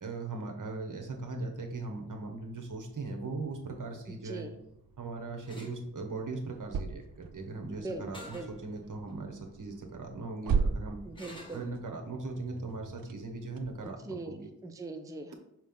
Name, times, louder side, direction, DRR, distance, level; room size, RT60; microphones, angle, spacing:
voice 1, 0.0-4.5 5.0-8.4 8.6-11.0 11.5-14.5, right 3 dB, 60° right, 3 dB, 1.1 m, -39 dB
sound 1, 0.7-13.9, right 5 dB, 80° right, 0.5 m, -40 dB
sound 2, 5.5-5.8 8.1-8.5 9.1-9.2 11.2-11.7, equal, 15° left, 1.2 m, -47 dB
voice 2, 7.8-8.5 11.1-11.7 14.0-14.4 14.6-15.3, right 2 dB, 10° right, 5 dB, 0.5 m, -40 dB
5.6 x 3.2 x 5.3 m, 0.82 s
wide cardioid pair, 85°, 35 cm